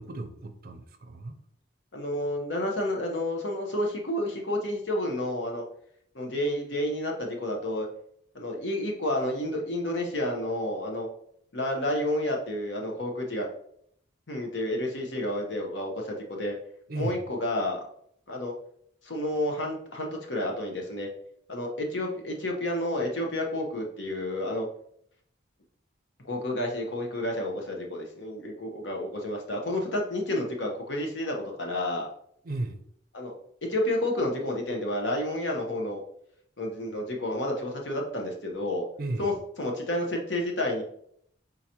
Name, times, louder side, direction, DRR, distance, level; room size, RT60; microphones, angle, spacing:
voice 1, 0.0-1.4 16.9-17.2 32.4-32.8 39.0-39.3, right 2 dB, 50° right, 6 dB, 0.5 m, -34 dB
voice 2, 1.9-5.6 6.1-7.9 8.3-11.1 11.5-13.5 14.3-16.6 16.9-17.8 18.3-18.5 19.0-21.1 21.5-24.7 26.3-32.1 33.1-33.3 33.7-36.0 36.6-38.9 39.2-39.3 39.6-40.8, left 1 dB, 70° left, 1 dB, 0.9 m, -30 dB
4.8 x 3.9 x 2.8 m, 0.68 s
head